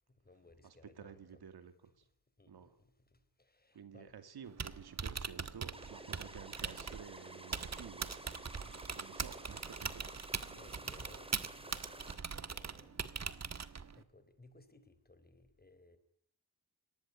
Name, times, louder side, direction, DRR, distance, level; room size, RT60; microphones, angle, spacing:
voice 1, 0.1-1.4 2.4-4.1 8.5-9.4 10.5-16.0, left 2 dB, 25° left, 13 dB, 4.1 m, -62 dB
voice 2, 0.6-2.0 2.5-2.8 3.7-8.2 8.9-10.1 10.5-10.6, right 7 dB, 75° right, 10 dB, 2.5 m, -52 dB
Typing, 4.4-14.0, right 5 dB, 45° right, 1.6 m, -42 dB
sound 1, 5.7-12.2, right 1 dB, 15° right, 4.5 m, -52 dB
25.0 x 19.5 x 9.8 m, 0.69 s
cardioid pair, 70°, 39 cm